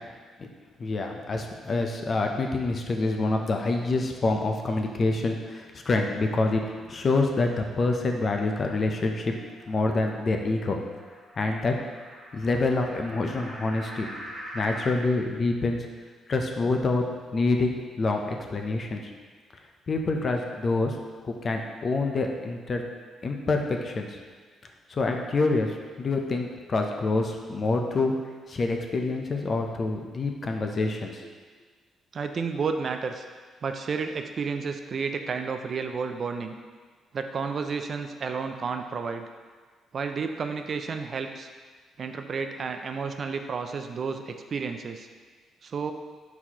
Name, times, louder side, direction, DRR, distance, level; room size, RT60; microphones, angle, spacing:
voice 1, 0.8-9.3 9.7-10.8 11.4-11.7 12.3-14.1 14.5-15.9 16.3-17.0 17.3-19.1 19.9-20.9 21.2-22.8 23.2-24.2 24.9-25.7 26.0-28.1 28.5-31.3, left 3 dB, 40° left, 3 dB, 0.5 m, -26 dB
sound 1, 8.7-15.0, equal, 20° right, 1.4 m, -44 dB
voice 2, 32.1-33.2 33.6-36.5 37.1-39.3 39.9-41.5 42.0-45.1 45.6-45.9, right 5 dB, 50° right, 6 dB, 0.3 m, -31 dB
4.4 x 4.1 x 2.9 m, 1.5 s
cardioid pair, 90°, 0 cm